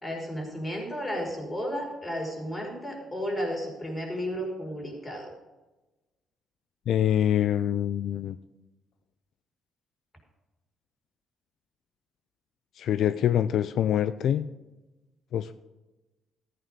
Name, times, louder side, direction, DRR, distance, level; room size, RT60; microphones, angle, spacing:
voice 1, 0.0-5.3, equal, 15° left, 0 dB, 5.2 m, -33 dB
voice 2, 6.9-8.4 12.8-14.5 15.3-15.5, left 10 dB, 70° left, 13 dB, 0.4 m, -25 dB
14.5 x 9.1 x 5.3 m, 1.1 s
cardioid pair, 90°, 0 cm